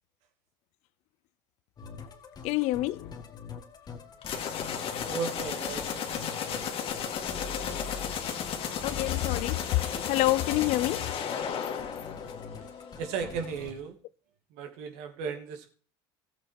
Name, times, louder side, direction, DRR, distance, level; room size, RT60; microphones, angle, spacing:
Musical instrument, 1.8-13.7, left 5 dB, 35° left, 1.9 m, -44 dB
voice 1, 2.4-3.1 8.8-9.7 10.0-11.1, left 18 dB, 65° left, 0.5 m, -27 dB
sound 1, 4.2-12.9, left 7 dB, 50° left, 2.1 m, -34 dB
voice 2, 5.0-6.8 13.0-14.0 14.5-15.7, right 6 dB, 75° right, 2.4 m, -36 dB
15.0 x 7.6 x 4.6 m
supercardioid pair, 100°, 12 cm